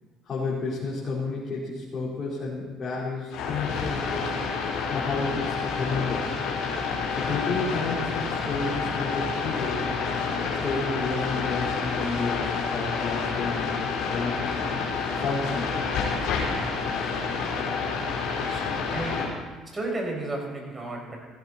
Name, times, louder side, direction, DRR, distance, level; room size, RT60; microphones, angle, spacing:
voice 1, 0.2-4.3 4.9-6.3 7.1-9.9 10.6-13.7 14.1-14.7 15.1-15.8, left 3 dB, 40° left, -7 dB, 4.4 m, -31 dB
sound 1, 3.3-19.3, left 5 dB, 70° left, 4.6 m, -29 dB
voice 2, 18.3-19.3 19.7-21.2, right 2 dB, 25° right, 0 dB, 6.3 m, -33 dB
15.5 x 15.5 x 4.4 m, 1.3 s
hypercardioid pair, 65°, 0 cm